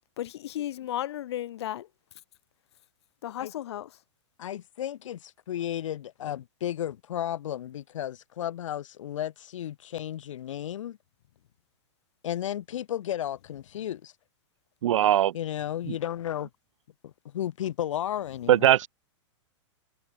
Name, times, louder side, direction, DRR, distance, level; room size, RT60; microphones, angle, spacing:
voice 1, 0.2-1.9 3.2-3.9, left 12 dB, 60° left, 2.1 m, -34 dB
voice 2, 4.4-11.0 12.2-14.1 15.3-16.5 17.0-18.7, left 11 dB, 90° left, 0.7 m, -33 dB
voice 3, 14.8-15.3 15.9-16.0 18.5-18.9, right 12 dB, 85° right, 0.6 m, -20 dB
supercardioid pair, 170°, 16 cm